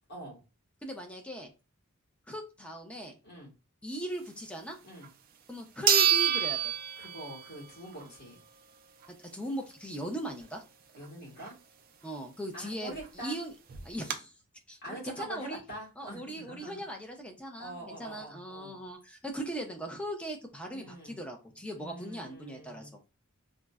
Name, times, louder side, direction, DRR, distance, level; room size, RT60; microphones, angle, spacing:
voice 1, 0.1-0.4 3.2-3.5 4.8-5.1 7.0-8.4 11.0-11.6 12.5-13.4 14.8-16.8 17.6-18.8 20.7-21.2 21.8-22.9, right 1 dB, 50° left, -4 dB, 1.5 m, -44 dB
voice 2, 0.8-1.5 2.3-3.1 3.8-4.8 5.5-6.7 8.0-8.1 9.1-10.6 12.0-13.5 13.8-14.3 14.7-15.6 16.0-23.0, right 1 dB, 5° left, 2 dB, 0.5 m, -39 dB
sound 1, 5.0-5.1 5.9-7.6 8.0-8.1 12.7-12.8 13.0-13.1 13.7-14.1, right 9 dB, 45° right, 0.4 m, -26 dB
3.6 x 2.0 x 2.3 m, 0.30 s
head